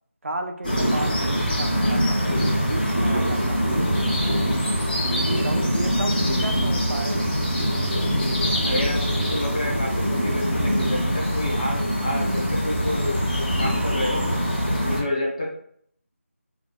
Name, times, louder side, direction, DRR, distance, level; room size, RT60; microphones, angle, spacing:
voice 1, 0.2-2.3 2.6-4.8 5.4-7.5, right 2 dB, 65° right, 5 dB, 0.4 m, -34 dB
sound 1, 0.6-15.0, equal, 40° left, 0.9 m, -23 dB
voice 2, 8.6-14.3 14.6-15.5, left 1 dB, 25° left, -2 dB, 0.4 m, -29 dB
2.6 x 2.2 x 2.2 m, 0.64 s
figure-of-eight pair, 165°, 8 cm